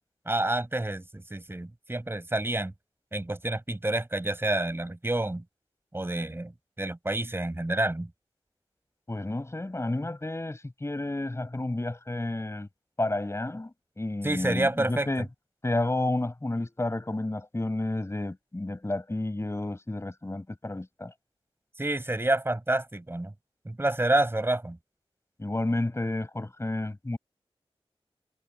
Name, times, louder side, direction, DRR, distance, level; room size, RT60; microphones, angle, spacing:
voice 1, 0.3-2.7 3.1-5.4 5.9-6.5 6.8-8.1 14.2-15.1 21.8-23.3 23.6-24.8, right 1 dB, 25° right, 6.2 m, -28 dB
voice 2, 9.1-12.7 13.0-15.3 15.6-21.1 25.4-27.2, left 2 dB, 25° left, 6.6 m, -31 dB
wide cardioid pair, 90°, 10 cm